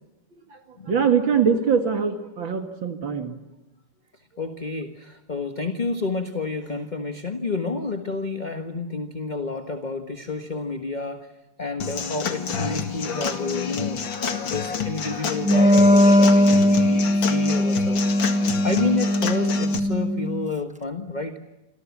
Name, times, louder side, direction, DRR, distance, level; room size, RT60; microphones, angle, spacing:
voice 1, 0.9-3.4, right 6 dB, 85° right, 6 dB, 2.9 m, -22 dB
voice 2, 4.4-11.3 11.6-14.0 14.4-18.0 18.3-21.3, left 3 dB, 25° left, 6 dB, 1.5 m, -30 dB
Human voice / Acoustic guitar / Drum, 11.8-19.8, left 6 dB, 85° left, 2.7 m, -29 dB
Wind instrument woodwind instrument, 15.4-20.5, left 1 dB, 10° right, 0.4 m, -19 dB
28.0 x 25.5 x 7.3 m, 1.0 s
omnidirectional pair, 2.0 m